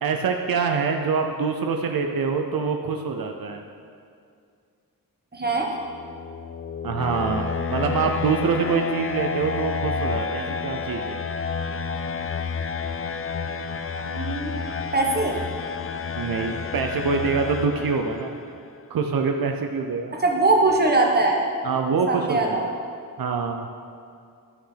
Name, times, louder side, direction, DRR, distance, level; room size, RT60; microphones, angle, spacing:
voice 1, 0.0-3.6 6.8-11.2 16.2-18.4 18.9-20.2 21.6-22.5 23.2-23.7, right 5 dB, 75° right, 4 dB, 0.7 m, -25 dB
voice 2, 5.3-5.7 14.0-14.5 14.9-15.4 20.1-21.4 22.1-22.6, right 2 dB, 25° right, 0 dB, 1.4 m, -21 dB
sound 1, 5.8-18.6, left 5 dB, 40° left, 0.5 m, -30 dB
12.5 x 5.7 x 5.8 m, 2.3 s
wide cardioid pair, 110°, 35 cm